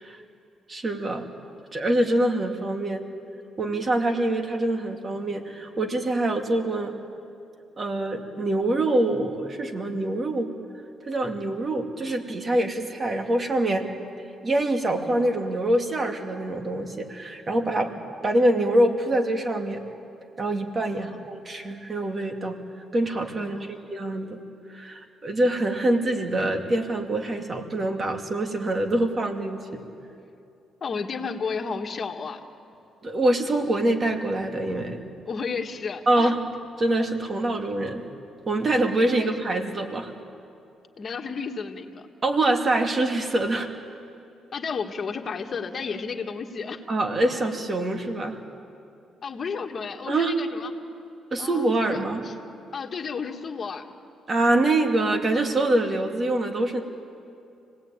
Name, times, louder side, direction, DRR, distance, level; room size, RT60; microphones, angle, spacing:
voice 1, 0.7-1.2 1.7-3.0 3.6-6.9 7.8-10.5 11.1-13.8 14.4-17.9 18.2-19.8 20.4-22.6 22.9-24.4 24.7-29.8 33.0-35.0 36.1-36.4 36.8-38.0 38.5-40.1 42.2-43.7 46.9-48.4 50.1-50.3 51.3-52.2 54.3-56.8, right 1 dB, 35° right, 4 dB, 2.4 m, -25 dB
voice 2, 23.4-23.7 30.8-32.4 35.3-36.3 39.2-39.3 41.0-42.1 44.5-46.8 49.2-50.7 51.4-52.3 52.7-53.9, left 5 dB, 45° left, 4 dB, 1.7 m, -32 dB
26.0 x 18.5 x 8.9 m, 2.5 s
cardioid pair, 90°, 0 cm